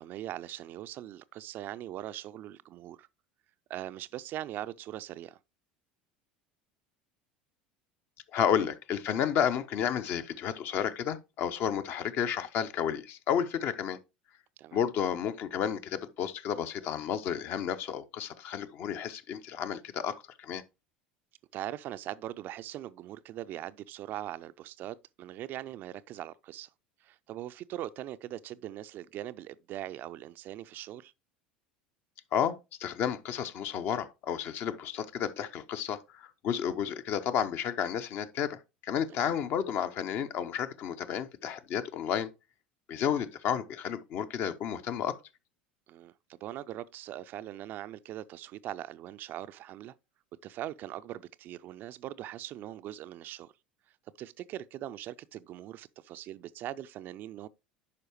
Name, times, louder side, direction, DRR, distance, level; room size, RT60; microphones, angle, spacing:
voice 1, 0.0-3.1 3.7-5.4 14.6-14.8 21.5-26.7 27.0-31.1 45.9-49.9 50.4-53.5 54.2-57.5, right 13 dB, 45° right, 0.4 m, -41 dB
voice 2, 8.3-14.0 14.7-20.6 32.3-42.3 42.9-45.2, left 8 dB, 45° left, 0.7 m, -31 dB
11.0 x 4.7 x 3.1 m
figure-of-eight pair, 70°, 5 cm